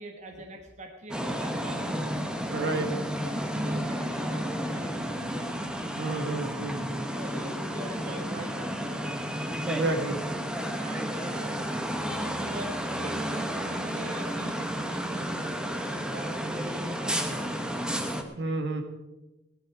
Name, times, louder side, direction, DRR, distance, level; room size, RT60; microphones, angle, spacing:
voice 1, 0.0-2.0 2.5-2.9 3.2-5.5 6.1-6.7 7.0-9.0 10.3-11.6 11.9-17.6 18.3-18.6, right 1 dB, 40° right, 3 dB, 1.5 m, -43 dB
sound 1, 1.1-18.2, equal, 5° right, 1.2 m, -32 dB
voice 2, 2.5-2.9 6.0-7.1 9.7-10.2 18.4-18.8, right 2 dB, 60° right, 5 dB, 1.8 m, -30 dB
18.0 x 11.0 x 4.8 m, 1.0 s
head